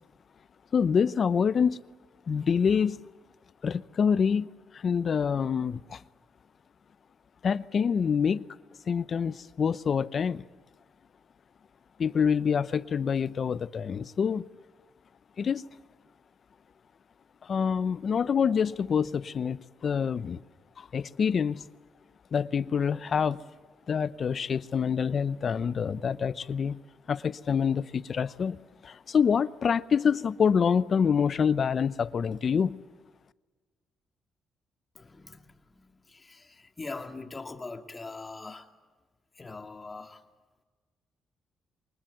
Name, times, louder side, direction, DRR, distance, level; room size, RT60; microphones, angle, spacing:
voice 1, 0.7-1.8 2.3-3.0 3.6-4.5 4.7-6.0 7.4-8.5 8.9-10.4 12.0-14.4 15.4-15.6 17.4-20.4 20.8-21.7 22.3-23.4 23.9-26.8 27.1-28.6 28.8-32.8, left 6 dB, 50° left, 0.8 m, -26 dB
voice 2, 35.0-38.7 39.3-40.2, left 3 dB, 25° left, 2.2 m, -42 dB
24.5 x 20.5 x 9.4 m
cardioid pair, 90°, 0 cm